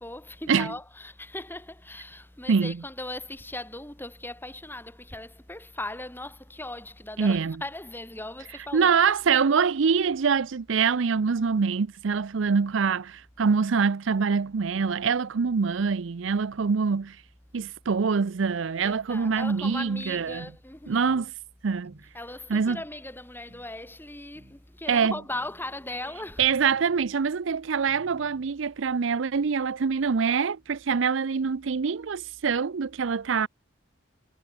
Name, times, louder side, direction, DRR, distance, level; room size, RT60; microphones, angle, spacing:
voice 1, 0.0-8.9 18.8-21.2 22.0-26.8, left 2 dB, 10° left, 2.3 m, -38 dB
voice 2, 7.2-7.5 8.7-17.2 17.5-20.4 20.9-21.3 21.6-21.9 22.5-22.8 24.9-25.1 26.4-33.5, right 5 dB, 70° right, 0.5 m, -24 dB
sound 1, 20.3-20.5 21.1-21.3 21.8-22.1 22.7-22.9 23.5-23.7 24.3-24.6 25.3-25.6 26.5-27.1 27.9-28.5, equal, 30° right, 6.2 m, -55 dB
head